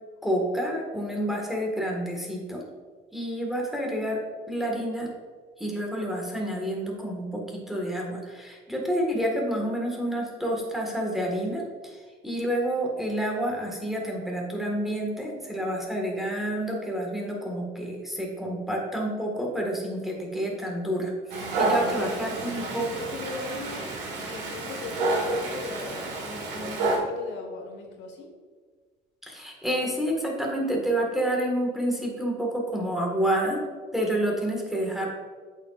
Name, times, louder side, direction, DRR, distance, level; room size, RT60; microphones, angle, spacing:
voice 1, 0.2-2.6 3.1-4.2 4.5-5.1 5.6-21.1 21.5-22.9 29.2-33.6 33.9-35.1, right 1 dB, ahead, -1 dB, 1.6 m, -29 dB
Dog, 21.3-27.0, right 2 dB, 75° right, 1.8 m, -29 dB
voice 2, 22.0-23.9 24.3-28.3, left 4 dB, 80° left, 2 dB, 1.4 m, -40 dB
8.2 x 6.5 x 2.4 m, 1.5 s
cardioid pair, 110°, 18 cm